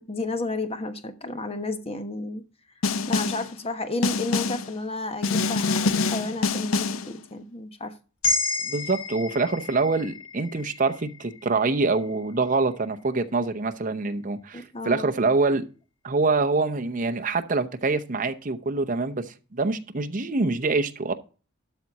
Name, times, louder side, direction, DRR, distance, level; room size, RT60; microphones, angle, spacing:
voice 1, 0.0-2.4 3.1-8.0 14.5-15.1, left 2 dB, 30° left, 1.1 m, -32 dB
Snare drum, 2.8-3.5 4.0-4.7 5.2-7.1, left 4 dB, 70° left, 0.5 m, -25 dB
sound 1, 8.2-12.5, left 3 dB, 90° left, 2.7 m, -31 dB
voice 2, 8.6-15.6 16.0-21.1, right 3 dB, 40° right, 0.8 m, -25 dB
12.5 x 4.2 x 5.9 m
head